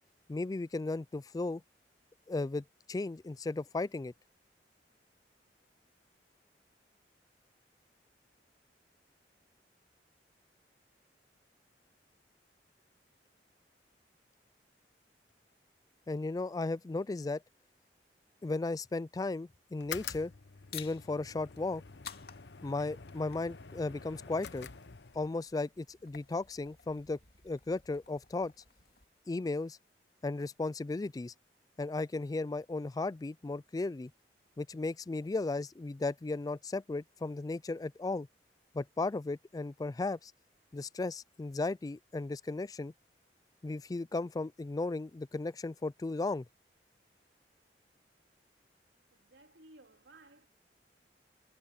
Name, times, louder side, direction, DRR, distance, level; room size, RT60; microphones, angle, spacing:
voice 1, 0.3-1.6 2.3-4.1 16.1-17.4 18.4-20.3 20.7-21.8 22.6-24.7 25.1-27.2 27.4-28.5 29.3-29.8 30.2-31.3 31.8-34.1 34.6-38.3 38.7-40.3 40.7-42.9 43.6-46.4, left 3 dB, 20° left, 0.3 m, -35 dB
sound 1, 19.7-25.4, left 7 dB, 75° left, 0.9 m, -47 dB
sound 2, 20.7-29.1, left 9 dB, 60° left, 2.8 m, -54 dB
voice 2, 49.1-50.5, right 2 dB, 90° right, 3.7 m, -58 dB
head